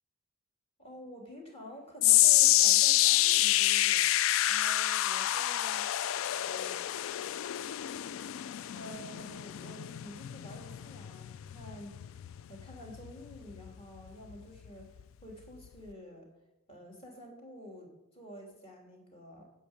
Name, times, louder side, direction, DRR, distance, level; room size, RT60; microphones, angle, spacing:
voice 1, 0.8-5.9 6.4-6.8 8.8-12.1 12.5-16.3 16.7-19.4, equal, 25° left, -1 dB, 2.9 m, -49 dB
sound 1, 2.0-14.3 14.6-15.0 15.6-15.7, left 15 dB, 70° left, 0.3 m, -28 dB
10.0 x 6.8 x 8.7 m, 0.94 s
head